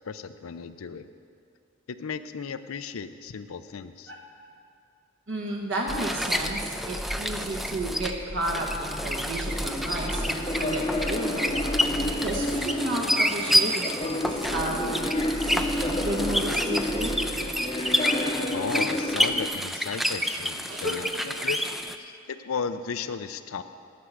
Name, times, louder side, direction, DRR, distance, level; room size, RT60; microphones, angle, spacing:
voice 1, 0.1-1.1 1.9-4.1 18.5-21.7 22.0-23.6, left 5 dB, 80° left, 12 dB, 0.5 m, -35 dB
voice 2, 5.3-11.6 12.2-15.1 15.4-17.1 20.7-21.2, right 1 dB, 60° right, 0 dB, 1.0 m, -32 dB
sound 1, 5.9-22.0, equal, ahead, 0.3 m, -29 dB
sound 2, 9.5-19.5, left 1 dB, 25° left, 0.7 m, -31 dB
11.5 x 6.1 x 7.8 m, 2.6 s
head